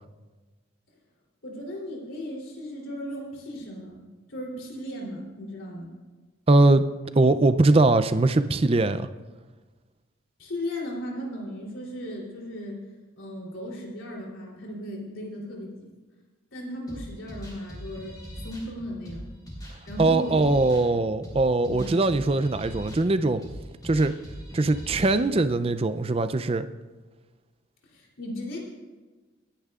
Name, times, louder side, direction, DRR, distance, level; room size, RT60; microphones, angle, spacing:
voice 1, 1.4-4.0 4.3-5.9 10.4-12.8 13.2-15.9 16.5-19.3 19.6-20.4 21.6-22.1 27.8-28.6, equal, 75° left, -2 dB, 3.2 m, -36 dB
voice 2, 6.5-6.9 7.2-9.1 20.0-23.4 23.8-24.2 24.5-26.7, right 2 dB, 30° right, 11 dB, 0.4 m, -21 dB
sound 1, 16.9-25.5, equal, 20° left, 3.7 m, -41 dB
27.5 x 10.0 x 2.4 m, 1.3 s
head